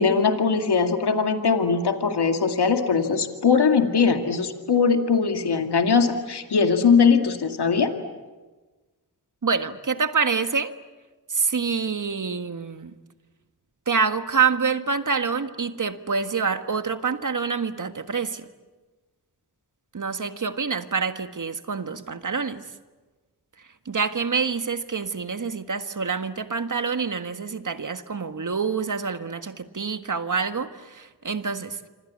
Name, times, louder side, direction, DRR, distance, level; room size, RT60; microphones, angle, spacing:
voice 1, 0.0-7.9, left 5 dB, 80° left, 6 dB, 2.2 m, -21 dB
voice 2, 9.4-10.7 11.3-12.9 13.9-18.5 19.9-22.6 23.8-31.8, right 5 dB, 50° right, 9 dB, 1.6 m, -26 dB
26.5 x 26.0 x 8.5 m, 1.2 s
cardioid pair, 60°, 39 cm